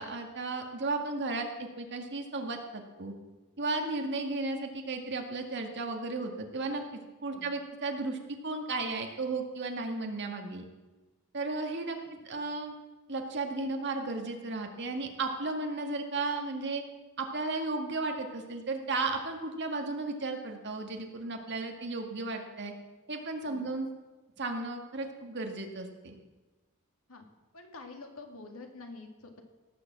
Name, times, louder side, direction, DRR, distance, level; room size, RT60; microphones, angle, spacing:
voice 1, 0.0-3.1 3.6-6.8 7.2-10.6 11.3-12.0 12.2-12.7 13.1-16.8 17.2-22.7 23.1-23.9 24.4-26.2, right 3 dB, 50° right, 3 dB, 1.9 m, -34 dB
voice 2, 27.5-29.4, left 3 dB, 70° left, 3 dB, 2.2 m, -47 dB
17.5 x 7.0 x 7.5 m, 1.2 s
head